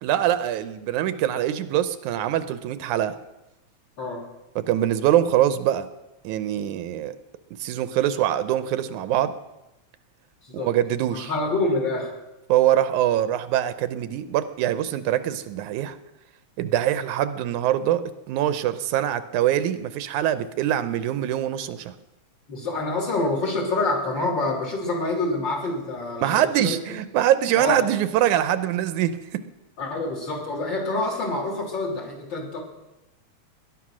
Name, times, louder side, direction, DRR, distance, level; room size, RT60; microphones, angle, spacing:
voice 1, 0.0-3.1 4.6-5.9 6.2-7.2 7.6-9.3 10.5-11.3 12.5-16.0 16.6-18.0 18.3-22.0 26.2-29.4, right 11 dB, 80° right, 13 dB, 2.1 m, -23 dB
voice 2, 11.1-12.1 22.5-26.8 27.6-27.8 29.8-32.6, left 2 dB, 40° left, -1 dB, 3.6 m, -27 dB
19.0 x 11.0 x 6.2 m, 0.99 s
omnidirectional pair, 3.4 m